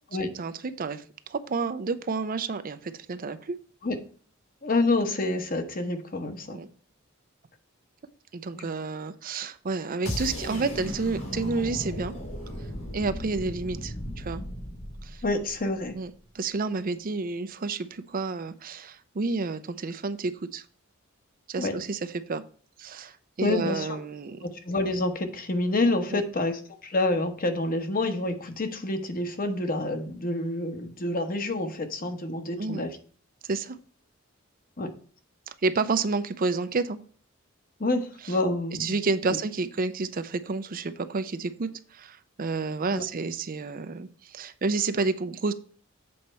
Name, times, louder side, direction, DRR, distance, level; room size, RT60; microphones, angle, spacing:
voice 1, 0.3-1.0 1.3-3.6 6.5-6.7 8.3-12.1 12.9-14.4 15.0-15.2 15.9-20.6 21.5-22.4 22.8-24.5 26.1-26.2 32.6-32.9 33.4-33.8 35.5-37.0 38.2-38.4 38.8-45.5, right 4 dB, 45° right, 12 dB, 0.5 m, -30 dB
voice 2, 4.6-6.6 8.5-8.7 15.2-15.9 21.6-21.8 23.4-24.0 24.4-32.9 34.8-34.9 37.8-38.9 42.9-43.0, left 2 dB, 45° left, 6 dB, 1.1 m, -28 dB
sound 1, 10.1-16.0, equal, 75° left, 2.8 m, -36 dB
7.8 x 4.3 x 5.5 m, 0.43 s
head